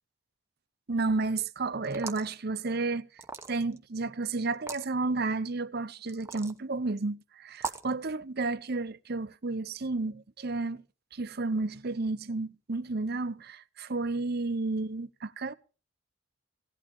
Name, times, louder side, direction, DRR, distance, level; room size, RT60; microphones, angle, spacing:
voice 1, 0.9-3.1 3.5-10.8 11.1-15.5, right 3 dB, 50° right, 0.7 m, -32 dB
sound 1, 1.8-2.3 3.2-3.8 4.5-4.9 6.1-6.6 7.6-7.9, right 4 dB, 15° right, 0.9 m, -38 dB
16.5 x 11.5 x 5.3 m
head